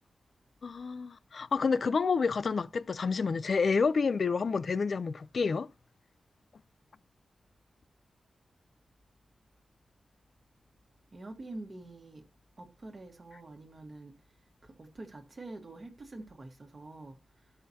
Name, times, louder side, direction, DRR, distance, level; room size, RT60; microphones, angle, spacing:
voice 1, 0.6-5.7, left 5 dB, 55° left, 0.3 m, -29 dB
voice 2, 11.1-12.3 12.6-14.2 14.6-17.5, right 2 dB, 40° right, 1.3 m, -46 dB
13.0 x 5.6 x 2.8 m
wide cardioid pair, 115°, 0 cm